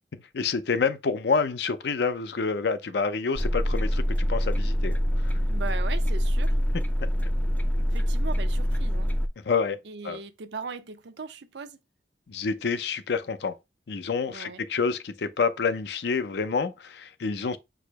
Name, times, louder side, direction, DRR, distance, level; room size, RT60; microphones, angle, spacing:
voice 1, 0.3-5.3 9.4-10.2 12.3-13.6 13.9-17.6, left 5 dB, 80° left, 0.5 m, -28 dB
sound 1, 3.3-9.3, equal, 10° left, 0.3 m, -25 dB
voice 2, 5.5-6.6 7.9-9.1 9.9-11.8 14.3-14.6, right 5 dB, 85° right, 0.6 m, -38 dB
4.8 x 2.0 x 4.5 m
head